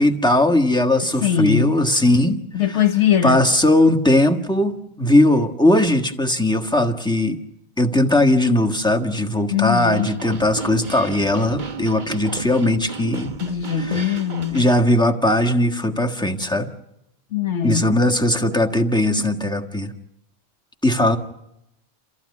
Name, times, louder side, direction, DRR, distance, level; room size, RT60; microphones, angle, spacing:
voice 1, 0.0-2.4 3.2-7.4 7.8-13.3 13.8-14.1 14.5-16.7 17.6-19.9 20.8-21.2, left 1 dB, 5° left, 1.5 m, -19 dB
voice 2, 1.2-1.8 2.5-3.4 9.5-10.1 13.4-14.7 17.3-17.9, left 8 dB, 80° left, 1.5 m, -21 dB
sound 1, 9.8-14.8, right 4 dB, 45° right, 1.2 m, -33 dB
29.0 x 15.0 x 9.6 m
omnidirectional pair, 1.2 m